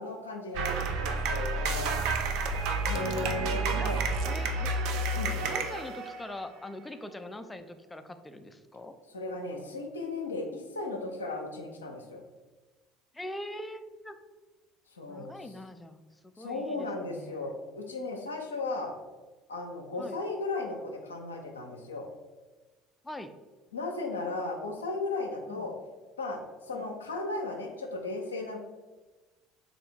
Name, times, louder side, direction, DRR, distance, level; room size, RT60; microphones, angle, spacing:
voice 1, 0.0-2.0 2.9-4.0 5.1-5.6 9.1-12.2 14.9-15.3 16.4-19.0 19.5-22.1 23.7-25.7 26.2-26.4 26.7-28.6, left 3 dB, 85° left, 2 dB, 0.4 m, -35 dB
sound 1, 0.5-6.5, right 3 dB, 65° right, 0.4 m, -30 dB
voice 2, 2.9-4.8 5.5-9.0 13.1-14.2 15.1-17.5 20.0-20.2 23.0-23.4 25.5-25.7 26.7-26.8, left 1 dB, 10° left, 9 dB, 0.4 m, -43 dB
3.4 x 2.7 x 4.2 m, 1.2 s
figure-of-eight pair, 60°, 0 cm